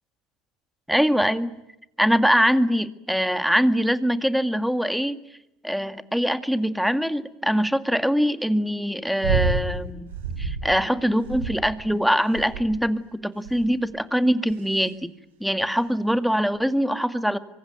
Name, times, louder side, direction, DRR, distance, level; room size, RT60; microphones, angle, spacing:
voice 1, 0.9-1.5 2.0-5.2 5.6-10.1 10.4-15.1 15.4-17.4, equal, ahead, 11 dB, 2.0 m, -23 dB
sound 1, 9.2-9.7 10.1-10.7 11.2-11.8 12.3-12.8 13.4-13.8 14.5-14.9 15.8-15.9, right 5 dB, 80° right, 7.0 m, -28 dB
24.5 x 24.0 x 9.2 m, 0.88 s
hypercardioid pair, 80°, 0 cm